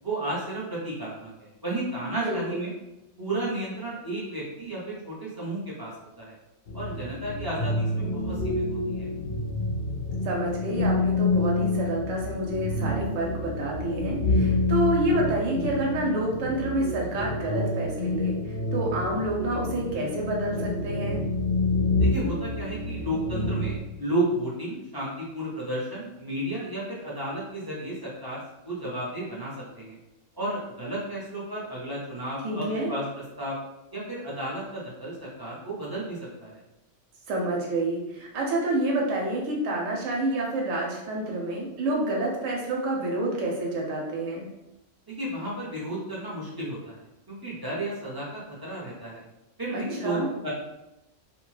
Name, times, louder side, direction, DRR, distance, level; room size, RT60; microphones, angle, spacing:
voice 1, 0.0-2.7 3.2-6.3 6.7-9.1 22.0-30.0 30.3-33.0 33.4-33.6 33.9-36.6 45.1-47.0 47.3-49.2 49.6-50.5, right 1 dB, 25° right, -7 dB, 0.5 m, -33 dB
voice 2, 2.0-2.7 10.2-21.2 32.4-32.9 37.3-44.5 49.7-50.3, right 1 dB, 80° right, -2 dB, 1.0 m, -28 dB
sound 1, 6.7-23.8, left 2 dB, 55° left, 0.7 m, -28 dB
2.6 x 2.2 x 3.1 m, 0.96 s
omnidirectional pair, 1.3 m